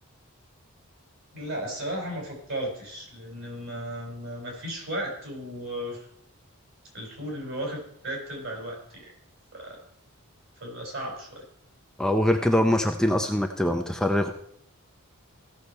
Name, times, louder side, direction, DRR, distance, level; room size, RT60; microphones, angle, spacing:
voice 1, 1.3-6.1 6.9-9.1 9.5-9.8 10.6-11.4, right 1 dB, 60° right, 0 dB, 4.4 m, -35 dB
voice 2, 12.0-14.3, left 1 dB, 5° left, 4 dB, 0.5 m, -23 dB
16.0 x 6.7 x 4.2 m, 0.69 s
head